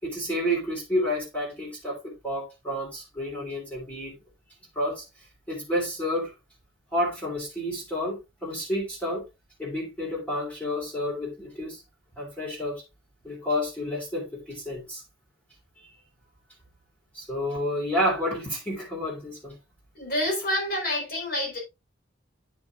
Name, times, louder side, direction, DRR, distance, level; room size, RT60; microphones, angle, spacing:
voice 1, 0.0-4.1 4.7-5.0 5.5-6.3 6.9-9.3 9.6-11.8 12.2-12.8 13.2-15.0 17.1-19.6, equal, 10° left, 3.0 m, -30 dB
voice 2, 19.9-21.6, left 1 dB, 50° left, 4.6 m, -28 dB
10.0 x 6.1 x 2.4 m
head